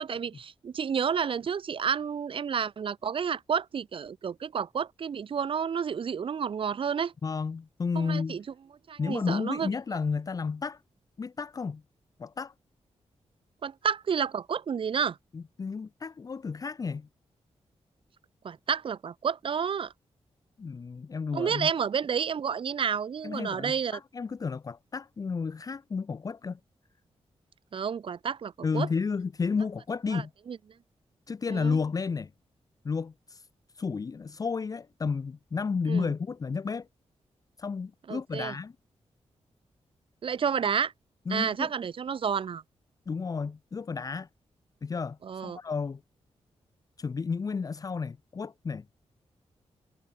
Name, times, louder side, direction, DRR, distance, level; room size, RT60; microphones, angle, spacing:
voice 1, 0.0-7.1 7.9-8.4 8.9-9.7 13.6-15.2 18.4-19.9 21.3-24.0 27.7-28.9 30.1-30.6 31.5-31.8 35.9-36.1 38.1-38.5 40.2-40.9 41.3-42.6 45.2-45.6, right 7 dB, 50° right, 1.2 m, -30 dB
voice 2, 7.2-8.4 9.0-10.8 11.2-11.8 12.2-12.5 15.3-17.1 20.6-21.7 23.2-26.6 28.6-30.3 31.3-32.3 32.8-33.5 33.7-36.9 37.6-38.7 41.3-41.7 43.1-44.3 44.8-45.2 45.4-46.0 47.0-48.8, left 5 dB, 30° left, 0.8 m, -32 dB
wide cardioid pair, 180°, 11 cm